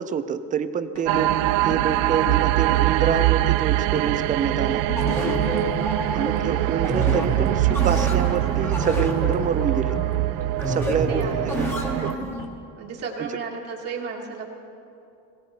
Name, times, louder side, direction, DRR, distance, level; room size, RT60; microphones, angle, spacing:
voice 1, 0.0-4.8 6.1-10.0 10.7-11.2 11.5-11.6 12.0-12.3 13.2-13.3, right 7 dB, 25° right, 11 dB, 0.4 m, -27 dB
sound 1, 1.0-12.5, left 5 dB, 65° left, 2.1 m, -37 dB
sound 2, 1.1-12.2, right 17 dB, 75° right, 0.5 m, -23 dB
sound 3, 5.0-12.5, equal, 5° left, 1.2 m, -29 dB
voice 2, 5.6-5.9 10.7-11.8 12.8-14.5, right 5 dB, 45° right, -2 dB, 1.6 m, -34 dB
18.0 x 17.5 x 4.2 m, 2.8 s
cardioid pair, 165°, 35 cm